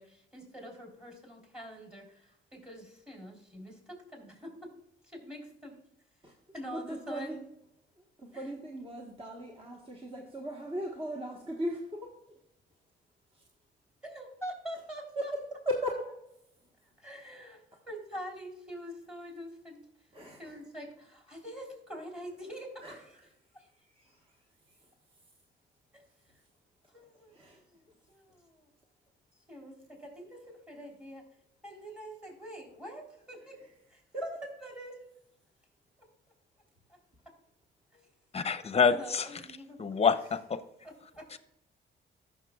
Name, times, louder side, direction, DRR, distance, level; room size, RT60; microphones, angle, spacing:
voice 1, 0.0-4.7 5.0-5.8 6.5-7.4 8.3-8.4 14.0-15.3 17.0-19.8 20.4-23.2 23.5-23.7 25.9-26.0 26.9-28.7 29.5-31.2 31.6-33.6 33.9-34.3 34.6-35.0 37.9-38.0 38.9-39.8 40.8-41.3, equal, 5° right, 3.5 m, -45 dB
voice 2, 6.7-7.4 8.2-12.4 13.3-13.4 15.2-16.1 20.1-20.5 22.8-23.0 23.8-24.4 24.7-24.9 27.3-27.6 33.4-33.7 34.1-34.4, equal, 25° right, 1.3 m, -38 dB
voice 3, 38.3-39.4 39.8-40.6 41.3-41.4, left 6 dB, 30° left, 0.7 m, -27 dB
15.0 x 6.5 x 2.4 m
cardioid pair, 90°, 20 cm